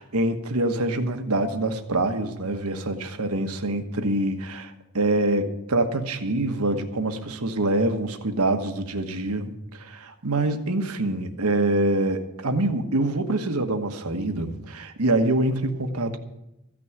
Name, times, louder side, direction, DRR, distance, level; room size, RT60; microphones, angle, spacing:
voice 1, 0.0-16.2, right 2 dB, 75° right, 7 dB, 1.3 m, -25 dB
15.0 x 6.1 x 9.5 m, 0.92 s
head